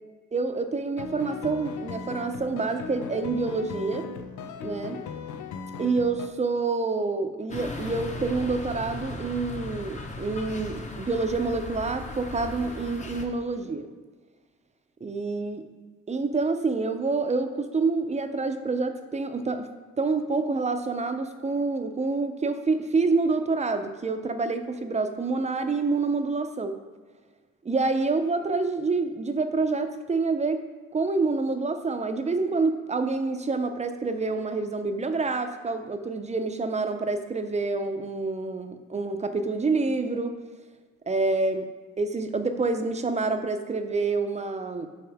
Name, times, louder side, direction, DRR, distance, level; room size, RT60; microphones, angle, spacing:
voice 1, 0.3-4.1 4.6-5.0 5.8-13.9 15.0-15.7 16.1-19.7 20.0-26.8 27.6-30.6 30.9-40.4 41.1-41.7 42.0-44.9, right 3 dB, 25° right, 7 dB, 0.6 m, -27 dB
sound 1, 1.0-6.3, left 5 dB, 75° left, 0.6 m, -38 dB
sound 2, 7.5-13.3, left 2 dB, 25° left, 0.8 m, -37 dB
7.8 x 4.8 x 3.5 m, 1.4 s
cardioid pair, 90°, 30 cm